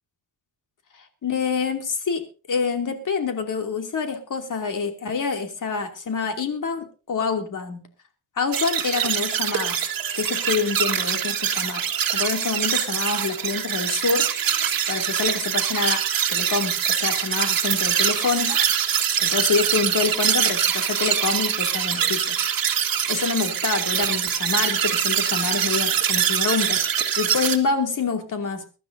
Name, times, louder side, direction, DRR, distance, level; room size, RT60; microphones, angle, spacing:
voice 1, 0.9-7.8 8.4-9.8 10.1-11.8 12.1-14.3 14.9-16.0 16.3-18.6 19.2-22.4 23.1-26.8 27.2-28.7, left 5 dB, 45° left, 4 dB, 2.8 m, -26 dB
sound 1, 8.5-27.6, right 9 dB, 55° right, 1.9 m, -24 dB
23.0 x 12.0 x 2.7 m, 0.34 s
cardioid pair, 120°, 42 cm